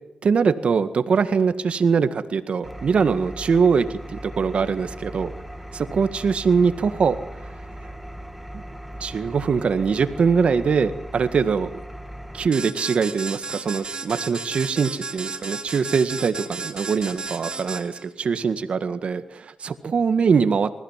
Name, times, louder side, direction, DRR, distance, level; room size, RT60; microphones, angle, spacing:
voice 1, 0.2-5.3 5.7-7.2 8.5-8.6 9.0-11.7 12.3-20.7, right 5 dB, 65° right, 11 dB, 1.8 m, -22 dB
Engine, 2.6-12.5, equal, ahead, 2.2 m, -38 dB
sound 1, 12.5-18.1, right 4 dB, 45° right, 4.6 m, -33 dB
29.5 x 16.0 x 7.5 m, 0.84 s
cardioid pair, 60°, 2 cm